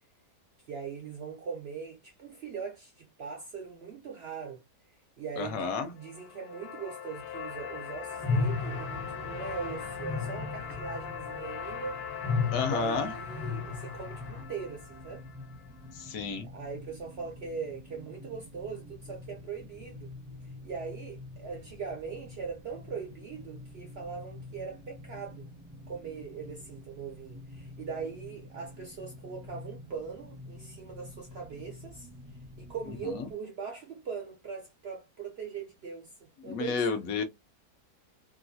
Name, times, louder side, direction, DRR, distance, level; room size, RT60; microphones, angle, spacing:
voice 1, 0.7-4.6 5.2-12.0 12.6-15.2 16.4-20.1 20.6-25.4 25.9-32.1 32.6-36.8, right 6 dB, 75° right, 0.5 m, -40 dB
voice 2, 5.4-5.9 12.5-13.1 15.9-16.5 33.0-33.3 36.4-37.2, left 5 dB, 65° left, 0.9 m, -31 dB
sound 1, 6.0-16.0, left 7 dB, 85° left, 1.2 m, -41 dB
sound 2, 8.2-14.4, left 4 dB, 35° left, 0.5 m, -34 dB
sound 3, 14.0-33.3, left 2 dB, 20° right, 0.5 m, -48 dB
3.0 x 2.3 x 2.6 m
omnidirectional pair, 1.8 m